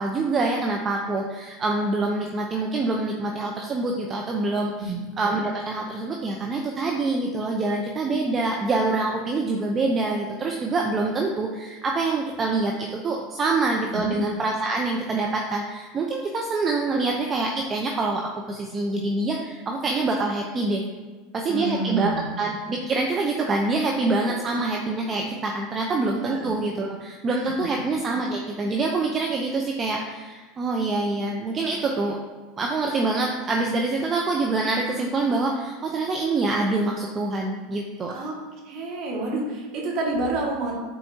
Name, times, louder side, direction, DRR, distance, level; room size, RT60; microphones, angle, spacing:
voice 1, 0.0-20.8 21.3-32.2 32.6-38.1, right 3 dB, 30° right, 0 dB, 0.7 m, -25 dB
voice 2, 21.5-22.4 24.3-24.4 26.3-26.4 27.3-27.5 38.1-38.3 38.7-40.8, right 2 dB, 55° right, -2 dB, 1.9 m, -29 dB
9.4 x 4.2 x 2.8 m, 1.3 s
hypercardioid pair, 100°, 0 cm